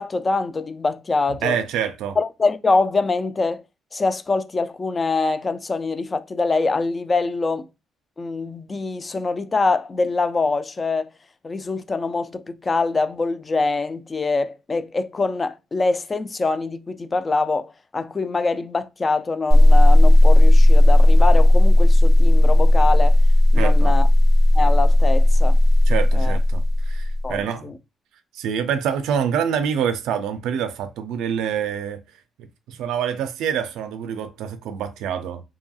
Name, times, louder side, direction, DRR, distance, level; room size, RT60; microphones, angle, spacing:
voice 1, 0.0-1.6 2.2-3.6 3.9-7.7 8.2-11.1 11.4-23.2 23.5-24.1 24.5-25.6 26.1-26.4 27.2-27.7, left 3 dB, 30° left, 0.3 m, -24 dB
voice 2, 1.4-2.2 23.6-23.9 25.9-27.7 28.3-32.0 32.4-35.4, right 8 dB, 90° right, 0.3 m, -26 dB
sound 1, 19.5-27.3, left 1 dB, 5° right, 1.0 m, -14 dB
2.7 x 2.6 x 2.3 m
cardioid pair, 90°, 0 cm